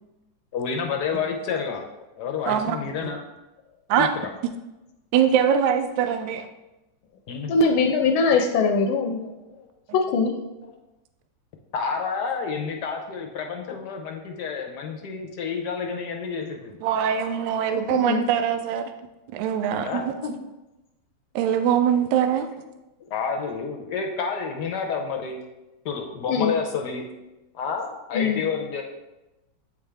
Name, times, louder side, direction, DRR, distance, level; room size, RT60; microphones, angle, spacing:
voice 1, 0.5-1.8 2.2-3.2 4.0-4.1 7.3-7.5 9.2-9.7 11.7-16.8 19.8-20.3 23.1-25.4 25.8-27.0 27.5-28.8, left 5 dB, 65° left, 3 dB, 1.1 m, -29 dB
voice 2, 2.5-2.8 3.9-4.1 5.1-6.5 16.8-18.9 19.3-20.1 21.3-22.5, right 8 dB, 75° right, 8 dB, 1.2 m, -22 dB
voice 3, 7.5-9.2 9.9-10.4 17.9-18.2 26.3-26.5 28.1-28.4, left 4 dB, 80° left, 2 dB, 1.4 m, -21 dB
8.5 x 3.6 x 3.4 m, 0.98 s
omnidirectional pair, 2.3 m